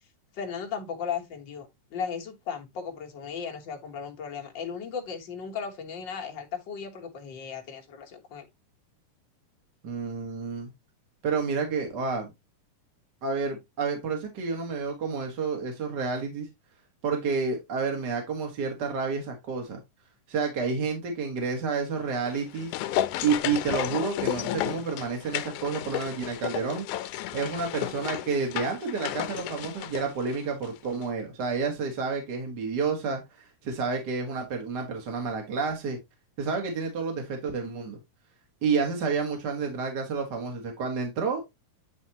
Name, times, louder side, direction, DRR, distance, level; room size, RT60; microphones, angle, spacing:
voice 1, 0.3-8.5, left 6 dB, 55° left, 1.3 m, -36 dB
voice 2, 9.8-10.7 11.2-12.3 13.2-16.5 17.0-19.8 20.3-22.7 23.2-36.0 36.4-38.0 38.6-41.4, right 5 dB, 45° right, 1.5 m, -30 dB
sound 1, 22.1-30.8 31.0-31.1, left 13 dB, 80° left, 1.9 m, -33 dB
9.7 x 4.2 x 2.9 m
omnidirectional pair, 3.8 m